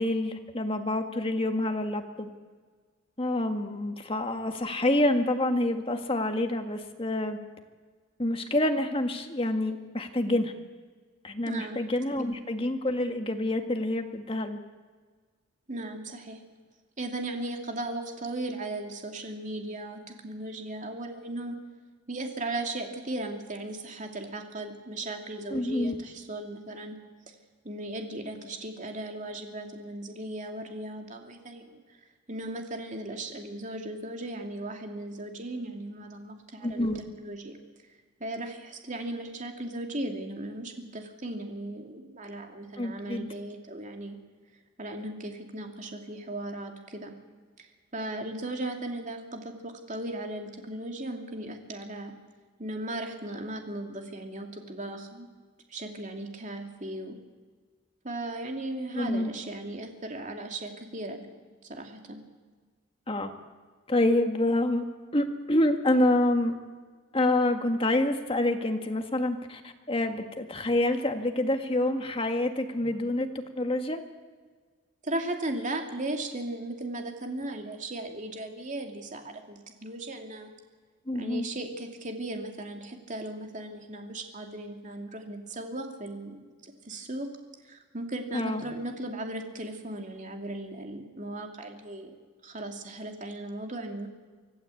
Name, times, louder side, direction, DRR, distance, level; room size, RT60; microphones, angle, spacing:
voice 1, 0.0-2.3 3.2-7.4 8.2-10.5 11.2-14.6 25.5-26.0 36.6-37.0 42.8-43.3 58.9-59.3 63.1-63.3 63.9-64.8 65.1-66.5 67.1-73.3 73.6-74.0 81.1-81.5 88.3-88.6, left 1 dB, 25° left, 5 dB, 1.8 m, -27 dB
voice 2, 11.4-11.8 15.7-16.4 17.0-21.6 22.1-27.0 27.6-31.8 32.3-37.6 38.2-44.2 44.8-47.1 47.6-52.1 52.6-55.3 55.7-57.2 58.0-61.2 61.6-62.2 72.8-72.9 75.0-80.5 81.1-87.3 87.6-92.1 92.4-94.1, right 1 dB, 35° right, 3 dB, 2.8 m, -37 dB
25.0 x 16.0 x 8.6 m, 1.5 s
head